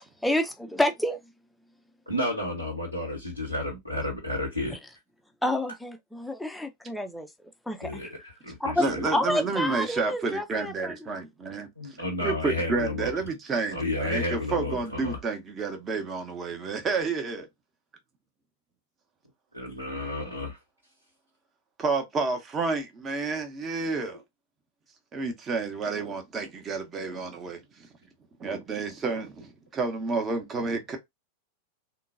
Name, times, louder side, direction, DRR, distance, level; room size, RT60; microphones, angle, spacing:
voice 1, 0.2-1.2 5.4-7.3 7.7-8.1 8.6-8.8 9.1-10.9, left 1 dB, 5° left, 0.6 m, -28 dB
voice 2, 2.1-4.8 7.8-9.1 11.8-13.1 13.7-14.8 15.0-15.2 19.5-20.6, left 1 dB, 90° right, 0.9 m, -31 dB
voice 3, 8.8-11.7 12.2-17.4 21.8-24.2 25.1-27.6 28.4-29.3 29.7-31.0, right 4 dB, 25° right, 0.8 m, -30 dB
3.7 x 2.2 x 2.5 m
figure-of-eight pair, 90°, 0 cm